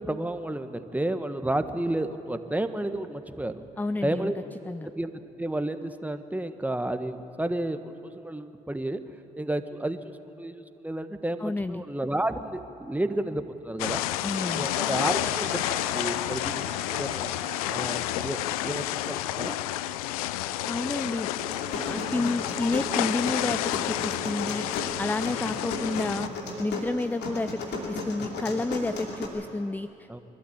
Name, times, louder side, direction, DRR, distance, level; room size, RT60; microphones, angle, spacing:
voice 1, 0.0-3.6 4.0-4.3 4.9-9.0 9.4-10.0 10.4-14.0 14.6-17.3 17.7-19.6 30.1-30.2, right 1 dB, 10° right, 9 dB, 1.5 m, -31 dB
voice 2, 3.8-4.3 4.7-4.9 11.4-11.8 14.2-14.7 20.7-21.3 21.9-24.7 25.0-26.3 26.6-30.1, left 2 dB, 10° left, 14 dB, 0.5 m, -30 dB
sound 1, 13.8-26.3, left 15 dB, 90° left, 0.4 m, -30 dB
sound 2, 14.3-26.3, right 4 dB, 40° right, 2.5 m, -45 dB
sound 3, 21.3-29.3, left 2 dB, 70° left, 2.8 m, -35 dB
24.0 x 13.0 x 8.7 m, 2.8 s
hypercardioid pair, 50°, 18 cm